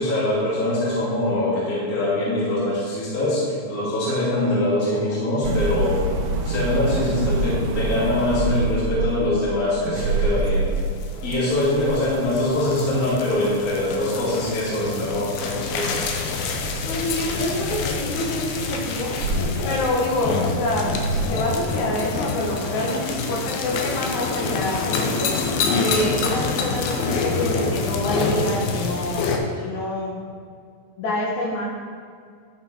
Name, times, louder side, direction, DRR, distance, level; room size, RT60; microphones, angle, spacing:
voice 1, 0.0-6.0 6.4-10.7 11.2-16.0, left 1 dB, 25° left, -9 dB, 2.7 m, -23 dB
sound 1, 5.4-14.6 14.8-18.6 19.1-21.3, right 2 dB, 70° right, 2.4 m, -27 dB
sound 2, 10.5-29.4, left 4 dB, 80° left, 2.6 m, -27 dB
voice 2, 16.8-19.2 19.6-25.3 25.8-30.1 31.0-31.7, left 1 dB, 65° left, -2 dB, 2.2 m, -27 dB
11.0 x 6.0 x 4.4 m, 2.1 s
omnidirectional pair, 4.3 m